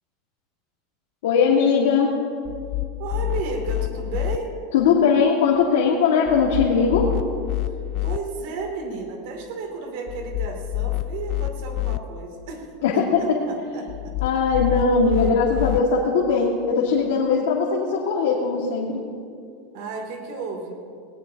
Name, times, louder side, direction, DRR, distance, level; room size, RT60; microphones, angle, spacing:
voice 1, 1.2-2.1 4.7-7.1 12.8-13.4 14.2-19.0, left 5 dB, 85° left, -3 dB, 1.9 m, -20 dB
sound 1, 2.4-4.4 6.3-8.2 10.1-12.0 13.9-15.8, left 17 dB, 35° left, 0.3 m, -28 dB
voice 2, 3.0-4.5 8.0-14.1 19.7-20.8, right 4 dB, 55° right, 2 dB, 2.7 m, -33 dB
19.0 x 18.5 x 2.9 m, 2.4 s
supercardioid pair, 170°, 0 cm